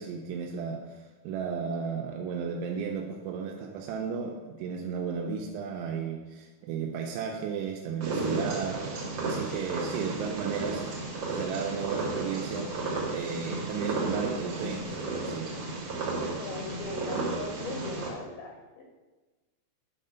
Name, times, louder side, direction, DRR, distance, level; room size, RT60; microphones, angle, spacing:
voice 1, 0.0-8.8 9.2-10.9 11.3-12.7 13.1-14.9 15.3-15.5, right 6 dB, 85° right, 1 dB, 3.1 m, -34 dB
Purr, 8.0-18.1, right 2 dB, 60° right, 1.8 m, -33 dB
voice 2, 16.4-18.8, left 4 dB, 70° left, 1 dB, 2.5 m, -39 dB
9.8 x 4.2 x 5.6 m, 1.2 s
omnidirectional pair, 5.4 m